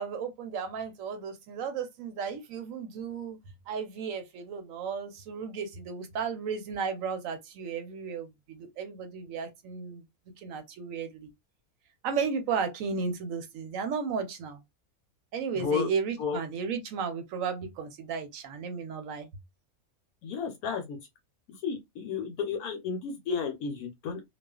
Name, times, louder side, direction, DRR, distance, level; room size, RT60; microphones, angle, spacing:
voice 1, 0.0-3.4 3.7-10.0 10.4-11.3 12.0-14.6 15.3-19.3, right 6 dB, 70° right, 0.9 m, -34 dB
voice 2, 15.5-15.9 16.2-16.4 20.2-21.0 21.5-24.2, left 6 dB, 80° left, 1.0 m, -32 dB
2.3 x 2.3 x 2.2 m
omnidirectional pair, 1.6 m